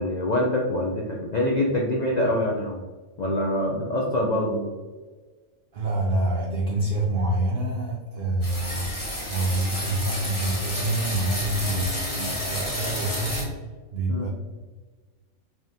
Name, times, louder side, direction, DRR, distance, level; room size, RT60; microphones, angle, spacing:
voice 1, 0.0-2.8 3.2-4.7 14.1-14.3, left 1 dB, 75° left, -2 dB, 0.4 m, -25 dB
voice 2, 5.7-8.9 9.3-13.5 13.9-14.3, right 1 dB, 60° right, 0 dB, 0.6 m, -26 dB
sound 1, 8.4-13.4, left 1 dB, 20° left, 1.2 m, -31 dB
4.8 x 2.9 x 2.7 m, 1.4 s
omnidirectional pair, 1.5 m